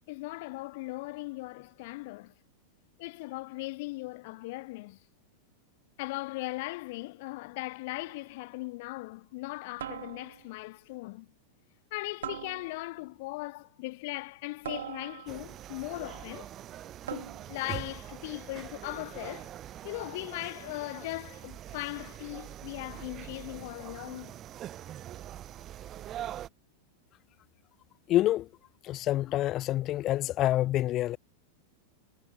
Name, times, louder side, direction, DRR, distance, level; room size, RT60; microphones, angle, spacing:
voice 1, 0.0-2.3 3.0-5.0 6.0-11.3 11.9-16.5 17.1-19.5 19.8-24.4, left 23 dB, 50° left, 7.1 m, -39 dB
sound 1, 8.0-8.3 9.8-10.6 12.2-13.1 14.6-15.6 17.1-17.7, right 11 dB, 60° right, 5.3 m, -42 dB
sound 2, 15.3-26.5, right 12 dB, 30° right, 6.3 m, -43 dB
voice 2, 28.1-28.5 28.8-31.2, left 14 dB, 35° left, 0.8 m, -27 dB
figure-of-eight pair, 90°, 0 cm